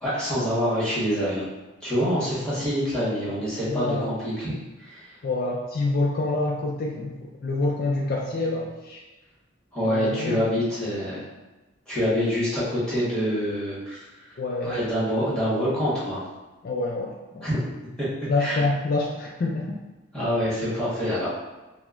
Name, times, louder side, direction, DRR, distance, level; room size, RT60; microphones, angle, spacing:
voice 1, 0.0-1.4 1.8-5.1 9.7-11.2 11.9-14.0 14.6-16.2 17.4-17.6 18.0-18.1 18.4-18.6 20.1-21.3, equal, 5° left, -10 dB, 1.2 m, -26 dB
voice 2, 3.7-4.1 5.2-9.0 9.8-10.5 14.4-14.8 16.6-17.5 18.3-19.8, left 2 dB, 50° left, -1 dB, 0.3 m, -27 dB
4.6 x 2.0 x 2.4 m, 1.1 s
head